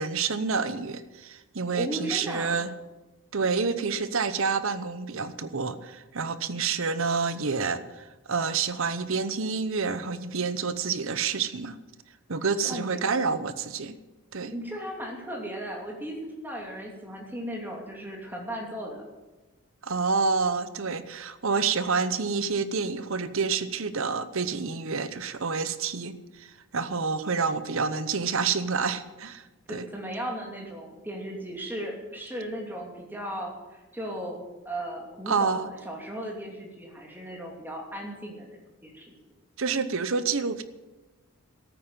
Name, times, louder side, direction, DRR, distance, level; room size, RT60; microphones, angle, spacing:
voice 1, 0.0-2.7 3.3-11.8 12.3-13.9 14.3-14.5 19.8-26.5 26.7-29.4 29.7-29.9 35.3-35.7 39.6-40.6, right 5 dB, 60° right, 13 dB, 0.9 m, -28 dB
voice 2, 1.7-2.6 12.6-13.0 14.5-19.0 29.7-38.5 38.8-39.1, equal, 10° right, -1 dB, 2.8 m, -36 dB
13.5 x 8.9 x 9.0 m, 1.1 s
head